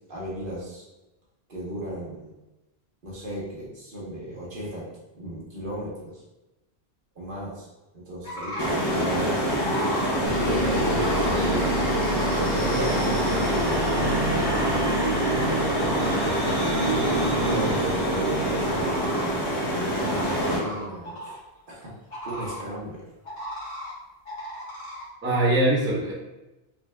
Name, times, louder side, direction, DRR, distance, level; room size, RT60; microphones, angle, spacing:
voice 1, 0.1-0.8 1.5-2.3 3.0-4.9 5.1-6.2 7.1-7.7 7.9-9.4 10.4-14.2 15.3-16.0 17.4-19.4 19.9-21.4 21.7-21.9 22.2-23.0, right 1 dB, 55° right, -5 dB, 1.2 m, -35 dB
sound 1, 8.2-8.9 9.5-10.1 10.7-11.4 11.8-12.5 12.9-13.6 14.4-14.9 15.7-16.3 16.6-17.8 18.7-19.3 20.0-21.4 22.1-22.6 23.2-23.9 24.2-25.0, left 1 dB, 65° left, 1.3 m, -36 dB
sound 2, 8.6-20.6, equal, 25° left, 0.7 m, -25 dB
sound 3, 10.2-19.7, right 2 dB, 40° right, 1.2 m, -29 dB
voice 2, 11.3-11.7 25.2-26.1, right 1 dB, 15° right, -6 dB, 0.7 m, -24 dB
3.9 x 3.2 x 2.2 m, 1.0 s
omnidirectional pair, 1.1 m